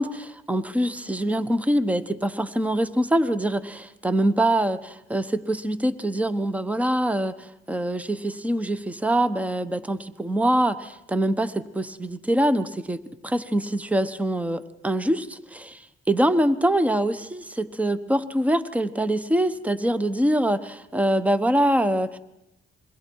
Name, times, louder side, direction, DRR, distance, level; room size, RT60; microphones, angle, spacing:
voice 1, 0.0-13.0 13.2-22.2, right 1 dB, 5° right, 13 dB, 1.0 m, -24 dB
27.5 x 22.5 x 4.7 m, 0.90 s
cardioid pair, 90°, 20 cm